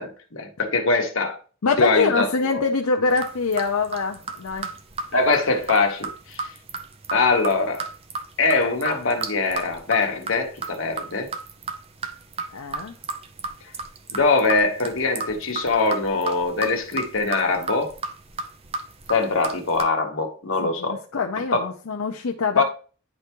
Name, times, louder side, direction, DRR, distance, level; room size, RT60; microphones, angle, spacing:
voice 1, 0.0-1.4 1.8-2.6 5.1-6.5 7.1-7.9 8.4-11.3 14.1-17.9 19.1-21.0 21.5-21.7 22.6-22.7, left 3 dB, 65° left, 1.2 m, -22 dB
voice 2, 1.6-4.7 12.5-12.9 20.6-22.6, left 4 dB, 85° left, 0.6 m, -24 dB
sound 1, 3.1-19.8, right 4 dB, 25° right, 0.5 m, -34 dB
10.0 x 3.4 x 3.0 m
head